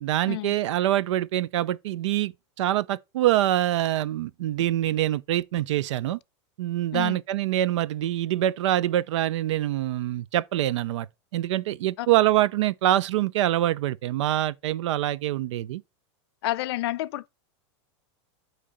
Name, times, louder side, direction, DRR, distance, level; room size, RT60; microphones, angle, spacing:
voice 1, 0.0-2.3 2.6-6.2 6.6-11.1 11.3-15.8, right 13 dB, 75° right, 0.5 m, -25 dB
voice 2, 16.4-17.3, left 16 dB, 60° left, 0.5 m, -29 dB
8.6 x 3.3 x 5.0 m
supercardioid pair, 170°, 15 cm